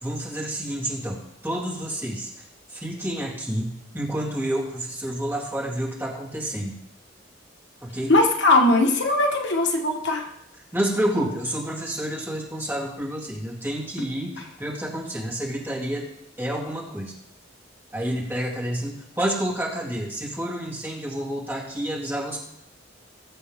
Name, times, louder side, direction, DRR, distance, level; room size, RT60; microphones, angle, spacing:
voice 1, 0.0-2.3 2.7-3.7 3.9-6.7 7.8-8.1 10.7-16.0 16.4-17.1 17.9-22.4, right 1 dB, 10° right, -4 dB, 3.0 m, -29 dB
voice 2, 8.1-10.3, left 2 dB, 65° left, 2 dB, 1.6 m, -20 dB
20.5 x 7.5 x 3.7 m, 0.81 s
head